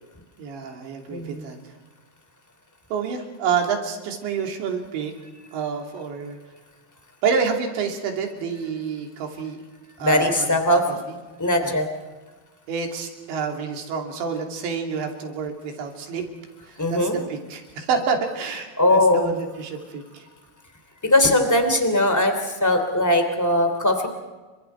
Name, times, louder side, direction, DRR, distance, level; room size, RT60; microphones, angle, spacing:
voice 1, 0.4-1.6 2.9-5.1 5.5-6.4 7.2-9.6 10.0-10.3 10.9-11.2 11.6-11.7 12.7-16.2 16.6-20.3, right 6 dB, 75° right, 3 dB, 5.1 m, -28 dB
voice 2, 1.1-1.4 10.0-10.8 11.4-11.9 16.8-17.2 18.8-19.3 21.0-24.1, left 1 dB, 5° left, 6 dB, 1.8 m, -20 dB
30.0 x 25.5 x 4.6 m, 1.3 s
omnidirectional pair, 5.2 m